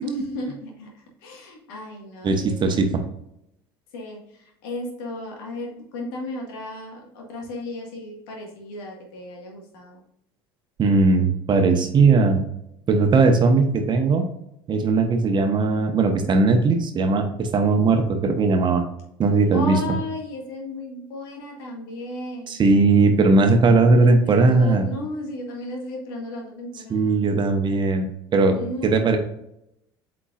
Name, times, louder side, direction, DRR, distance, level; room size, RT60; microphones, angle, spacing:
voice 1, 0.0-0.9 1.2-2.8 3.9-10.0 19.5-22.6 23.7-27.3 28.5-29.2, left 2 dB, 75° left, 0 dB, 1.9 m, -34 dB
voice 2, 2.2-3.0 10.8-12.4 12.9-14.3 14.7-18.8 19.2-19.8 22.5-24.9 26.9-28.1 28.3-28.6 28.8-29.2, right 3 dB, 40° right, 5 dB, 1.2 m, -18 dB
8.2 x 4.5 x 2.6 m, 0.79 s
hypercardioid pair, 70°, 12 cm